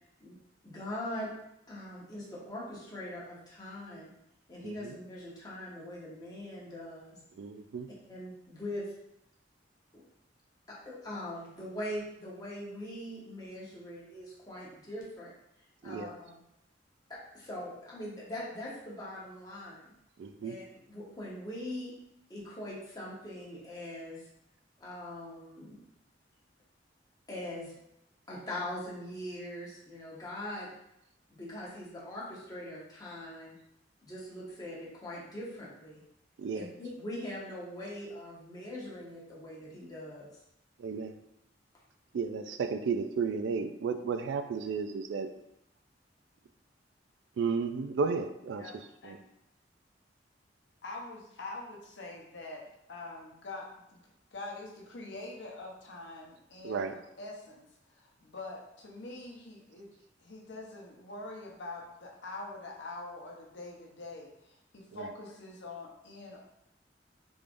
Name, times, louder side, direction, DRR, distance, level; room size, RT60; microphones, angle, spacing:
voice 1, 0.6-1.3 1.7-4.1 4.5-7.2 8.1-8.8 10.8-15.3 15.8-16.4 17.3-19.9 20.4-21.9 22.3-24.2 24.8-25.8 27.3-27.7 28.3-30.7 31.3-33.5 34.0-36.0 36.5-40.3, left 1 dB, 20° left, -6 dB, 1.0 m, -41 dB
voice 2, 4.6-4.9 7.4-7.9 15.8-16.1 20.2-20.6 36.4-36.7 40.8-41.1 42.1-45.3 47.4-48.7 49.0-49.2 56.6-56.9, right 5 dB, 85° right, 8 dB, 0.3 m, -33 dB
voice 3, 48.6-49.2 50.8-54.0 54.3-57.7 57.9-59.9 60.2-66.4, left 2 dB, 75° left, -1 dB, 0.7 m, -44 dB
3.6 x 3.3 x 2.5 m, 0.80 s
head